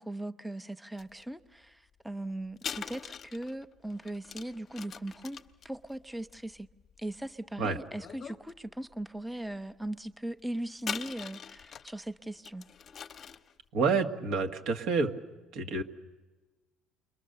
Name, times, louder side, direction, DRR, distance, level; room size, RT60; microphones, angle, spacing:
voice 1, 0.0-5.4 5.6-6.7 7.0-12.6, right 1 dB, 5° right, 0.7 m, -39 dB
sound 1, 1.0-1.2 2.6-7.3 7.9-8.5 8.9-9.0 10.8-12.0 12.4-13.5, left 7 dB, 45° left, 0.8 m, -42 dB
voice 2, 13.7-15.1 15.5-15.8, right 4 dB, 70° right, 1.7 m, -28 dB
28.5 x 22.5 x 6.8 m
supercardioid pair, 95°, 0 cm